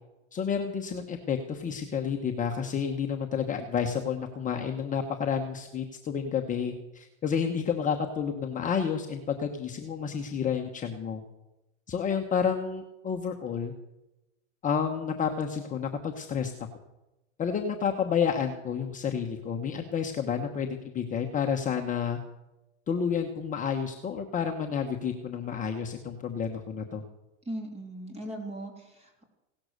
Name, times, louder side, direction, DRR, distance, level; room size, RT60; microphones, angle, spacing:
voice 1, 0.3-11.2 11.9-13.7 14.6-16.5 17.4-22.2 22.9-27.0, left 7 dB, 20° left, 2 dB, 1.1 m, -30 dB
voice 2, 27.5-29.2, right 1 dB, 15° right, 3 dB, 3.6 m, -38 dB
17.0 x 11.5 x 6.7 m, 0.98 s
supercardioid pair, 135°, 39 cm